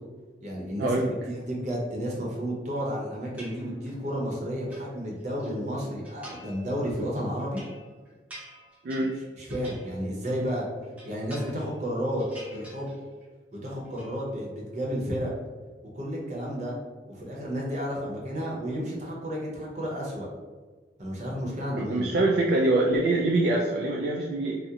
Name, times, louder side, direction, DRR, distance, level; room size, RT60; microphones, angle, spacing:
voice 1, 0.4-7.6 9.4-10.7 11.0-12.2 12.5-12.9 13.5-15.3 15.9-16.7 17.1-20.3 21.0-22.1, equal, 40° right, -3 dB, 0.7 m, -32 dB
sound 1, 3.4-4.1 4.4-5.5 6.0-6.7 7.0-10.5 10.8-11.9 12.2-13.3 13.5-14.1, equal, 10° right, 0.6 m, -48 dB
voice 2, 21.8-24.6, right 2 dB, 55° right, -2 dB, 0.3 m, -24 dB
2.8 x 2.0 x 3.6 m, 1.4 s
head